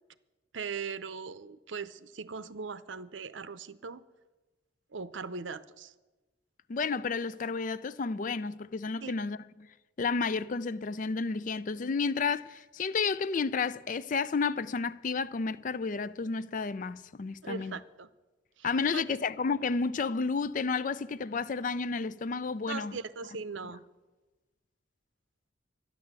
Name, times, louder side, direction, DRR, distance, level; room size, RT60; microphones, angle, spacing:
voice 1, 0.5-4.0 4.9-5.9 9.0-9.1 17.4-18.1 18.6-19.2 22.7-23.8, right 5 dB, 85° right, 0.7 m, -40 dB
voice 2, 6.7-9.7 10.0-17.8 18.6-22.9, left 4 dB, 45° left, 0.4 m, -31 dB
12.5 x 10.5 x 8.1 m
head